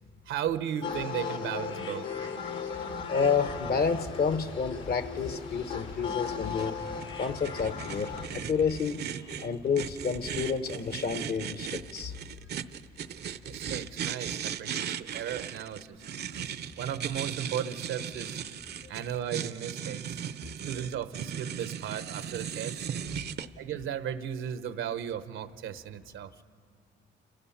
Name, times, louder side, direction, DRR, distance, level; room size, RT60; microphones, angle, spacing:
voice 1, 0.3-2.1 13.4-16.0 16.8-18.4 18.9-20.2 20.6-22.9 23.6-26.3, right 9 dB, 85° right, 11 dB, 1.0 m, -35 dB
sound 1, 0.8-8.3, left 5 dB, 70° left, 1.7 m, -37 dB
voice 2, 3.1-6.8 7.2-12.1, left 5 dB, 50° left, 11 dB, 1.1 m, -30 dB
sound 2, 3.4-11.0, left 2 dB, 85° left, 2.9 m, -47 dB
sound 3, 6.2-23.5, right 8 dB, 55° right, 0.6 m, -37 dB
29.5 x 15.5 x 5.8 m, 2.2 s
cardioid pair, 90°, 20 cm